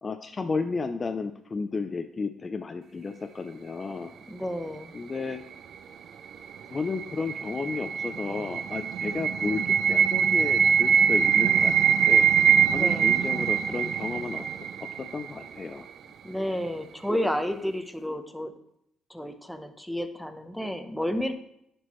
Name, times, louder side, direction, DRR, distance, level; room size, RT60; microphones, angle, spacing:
voice 1, 0.0-4.2 4.9-5.4 6.7-12.3 12.7-14.5 15.0-15.9, left 4 dB, 35° left, 7 dB, 0.4 m, -33 dB
voice 2, 4.3-4.9 12.7-13.2 16.2-18.5 19.1-21.3, equal, 5° left, 7 dB, 0.8 m, -31 dB
sound 1, 6.5-15.5, right 7 dB, 65° right, 0.4 m, -23 dB
11.0 x 4.5 x 3.0 m, 0.75 s
cardioid pair, 90°, 0 cm